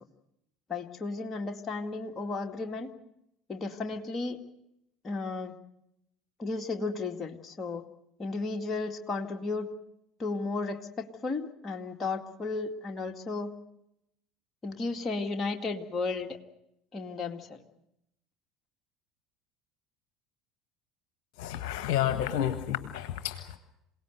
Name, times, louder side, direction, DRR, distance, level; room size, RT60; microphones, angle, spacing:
voice 1, 0.7-2.9 3.5-4.4 5.0-5.5 6.4-7.8 8.2-9.7 10.2-13.5 14.6-16.4 16.9-17.6, left 3 dB, 25° left, 3 dB, 2.2 m, -34 dB
voice 2, 21.4-23.6, left 11 dB, 55° left, 9 dB, 1.5 m, -30 dB
27.5 x 18.0 x 8.0 m, 0.85 s
figure-of-eight pair, 65°, 0 cm